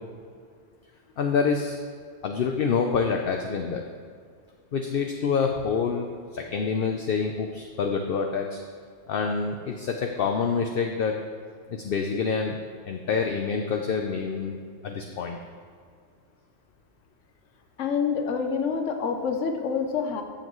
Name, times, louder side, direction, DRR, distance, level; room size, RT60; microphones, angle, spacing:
voice 1, 1.2-1.8 2.2-3.8 4.7-8.6 9.1-11.1 11.7-12.6 12.9-15.4, left 5 dB, 55° left, 3 dB, 0.8 m, -27 dB
voice 2, 17.8-20.2, left 6 dB, 90° left, 5 dB, 1.1 m, -27 dB
14.0 x 7.5 x 3.1 m, 2.1 s
omnidirectional pair, 1.2 m